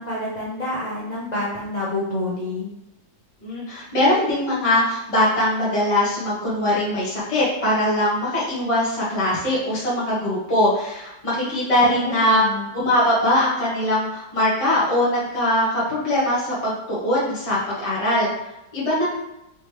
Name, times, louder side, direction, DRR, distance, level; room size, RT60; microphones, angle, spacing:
voice 1, 0.0-2.7 11.4-12.6, left 1 dB, 85° left, -7 dB, 0.3 m, -28 dB
voice 2, 3.4-12.4 12.7-18.3 18.7-19.1, left 1 dB, 25° left, -8 dB, 0.9 m, -21 dB
5.0 x 3.1 x 3.2 m, 0.89 s
omnidirectional pair, 2.3 m